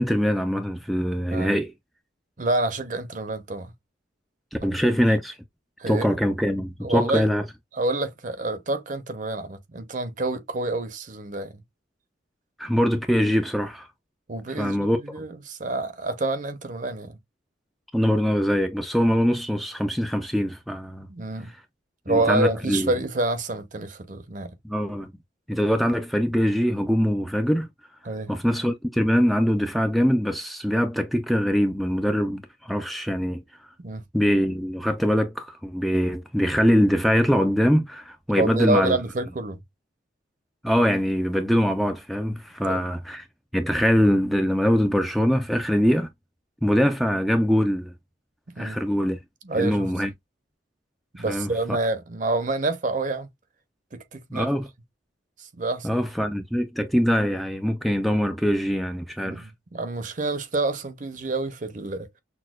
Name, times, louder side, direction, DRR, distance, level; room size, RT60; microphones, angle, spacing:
voice 1, 0.0-1.7 4.6-5.3 5.9-7.4 12.6-13.9 14.6-15.0 17.9-21.1 22.1-22.9 24.6-25.1 25.5-27.7 28.3-33.4 34.1-39.0 40.6-43.2 43.5-46.1 46.6-47.9 48.6-49.2 49.6-50.1 51.3-51.5 54.3-54.7 55.8-59.5, equal, ahead, 0.3 m, -23 dB
voice 2, 2.4-3.7 4.6-5.0 5.8-6.2 6.8-7.3 7.7-11.5 14.3-17.2 21.1-21.5 22.1-24.6 28.0-28.3 33.8-34.0 38.4-39.6 42.6-42.8 48.6-48.8 49.4-49.9 51.2-53.3 53.9-54.5 55.4-56.0 59.2-62.1, right 2 dB, 40° right, 0.6 m, -28 dB
6.1 x 2.2 x 2.3 m
head